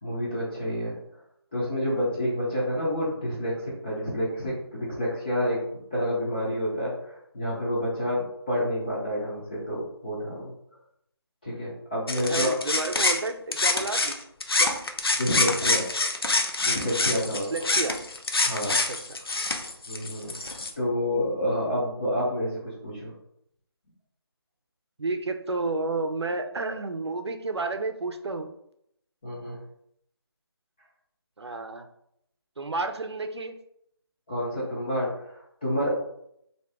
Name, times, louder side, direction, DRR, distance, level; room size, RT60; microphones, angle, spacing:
voice 1, 0.0-1.0 1.5-5.6 5.9-10.5 11.4-12.5 15.2-15.8 16.6-17.4 18.4-18.8 19.9-23.1 29.2-29.6 34.3-35.9, equal, 20° left, -8 dB, 0.6 m, -29 dB
sound 1, 12.1-14.2 14.4-20.7, left 3 dB, 65° left, 0.6 m, -26 dB
voice 2, 12.3-14.2 14.6-14.8 17.5-18.0 18.7-19.2 25.0-28.5 31.4-31.9 32.6-33.5, right 3 dB, 80° right, 7 dB, 0.6 m, -31 dB
2.9 x 2.8 x 3.3 m, 0.74 s
figure-of-eight pair, 170°, 14 cm